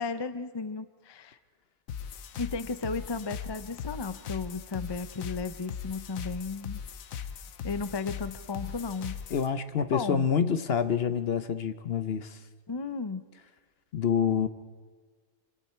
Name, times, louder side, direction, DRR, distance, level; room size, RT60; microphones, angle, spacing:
voice 1, 0.0-1.4 2.4-6.8 7.6-9.2 9.8-10.3 12.7-13.2, left 4 dB, 35° left, 12 dB, 0.4 m, -34 dB
sound 1, 1.9-9.5, left 7 dB, 75° left, 1.2 m, -39 dB
voice 2, 9.3-12.4 13.9-14.5, left 7 dB, 50° left, 12 dB, 0.9 m, -27 dB
26.0 x 25.0 x 4.4 m, 1.5 s
omnidirectional pair, 1.5 m